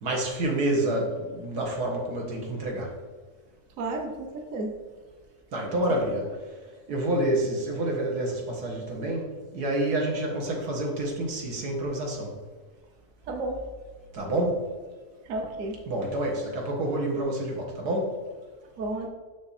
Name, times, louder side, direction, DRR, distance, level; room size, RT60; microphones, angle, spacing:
voice 1, 0.0-2.9 5.5-6.3 6.9-9.3 9.5-12.3 14.1-14.6 15.9-18.1, right 1 dB, 90° right, 0 dB, 2.0 m, -28 dB
voice 2, 3.8-4.7 5.9-6.0 13.3-13.6 15.3-15.8 18.8-19.1, right 2 dB, 60° right, 3 dB, 1.2 m, -32 dB
6.2 x 6.0 x 4.2 m, 1.4 s
omnidirectional pair, 1.6 m